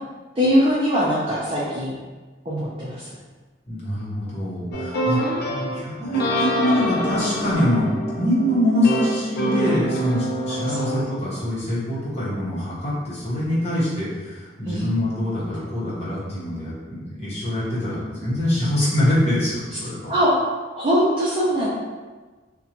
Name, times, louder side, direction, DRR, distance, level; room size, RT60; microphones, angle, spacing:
voice 1, 0.4-1.9 2.5-3.1 5.5-5.7 10.7-11.0 14.7-14.9 20.1-21.7, equal, 30° right, -9 dB, 0.5 m, -22 dB
voice 2, 3.7-5.2 5.7-20.1, left 1 dB, 35° left, -9 dB, 1.0 m, -24 dB
sound 1, 4.7-11.0, right 1 dB, 60° left, 0.5 m, -26 dB
2.6 x 2.2 x 2.8 m, 1.3 s
head